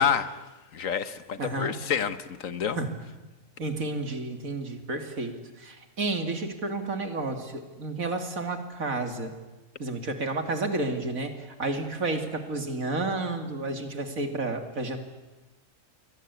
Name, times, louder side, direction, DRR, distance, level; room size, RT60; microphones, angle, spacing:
voice 1, 0.0-2.8, left 7 dB, 75° left, 12 dB, 1.6 m, -28 dB
voice 2, 1.4-1.7 2.8-2.9 3.6-9.3 9.8-15.0, right 2 dB, 85° right, 6 dB, 3.1 m, -31 dB
29.5 x 23.0 x 8.4 m, 1.1 s
omnidirectional pair, 1.4 m